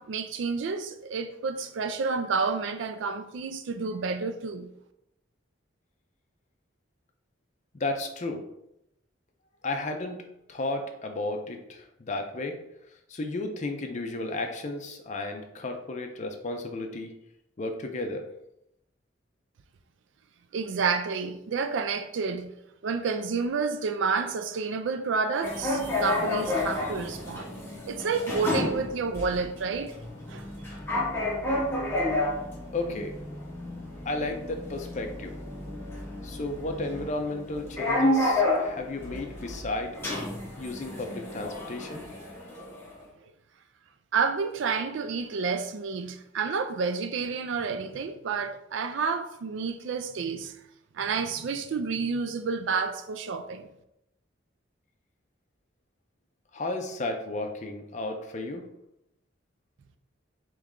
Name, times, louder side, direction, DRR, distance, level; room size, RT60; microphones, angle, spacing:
voice 1, 0.0-4.7 20.5-22.5 22.8-27.5 27.9-29.9 30.3-30.5 44.1-50.5 50.9-53.7, right 5 dB, 65° right, 0.4 m, -30 dB
voice 2, 7.7-8.5 9.6-10.2 10.5-12.6 13.1-17.1 17.6-18.3 32.7-33.1 34.1-35.4 36.2-40.0 40.6-42.0 56.5-58.6, left 2 dB, 35° left, 0.5 m, -33 dB
sound 1, 25.4-42.9, left 1 dB, 10° left, 0.9 m, -31 dB
3.5 x 3.1 x 3.6 m
head